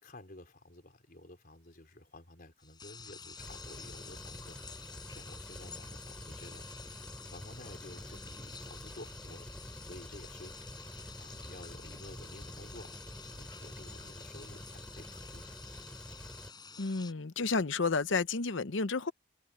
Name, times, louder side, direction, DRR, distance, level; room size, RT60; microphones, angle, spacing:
voice 1, 0.0-4.6 5.1-6.7 7.3-9.5 9.8-10.5 11.2-15.9, left 1 dB, 45° left, 4.1 m, -52 dB
sound 1, 2.6-17.1, left 5 dB, 20° left, 7.4 m, -50 dB
sound 2, 3.4-16.5, equal, 5° left, 7.3 m, -48 dB
voice 2, 16.8-19.1, left 4 dB, 65° left, 0.8 m, -31 dB
head